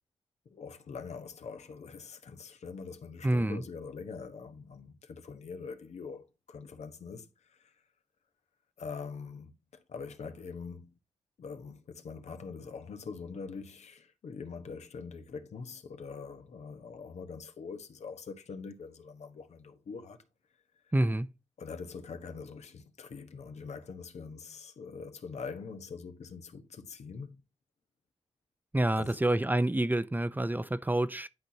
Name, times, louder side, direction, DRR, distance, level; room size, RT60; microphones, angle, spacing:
voice 1, 0.4-7.7 8.8-11.0 11.4-20.2 21.6-27.4 29.0-29.2, left 5 dB, 75° left, 1.2 m, -44 dB
voice 2, 3.2-3.6 20.9-21.3 28.7-31.3, right 1 dB, 15° right, 0.6 m, -28 dB
11.0 x 4.2 x 2.8 m
cardioid pair, 55°, 11 cm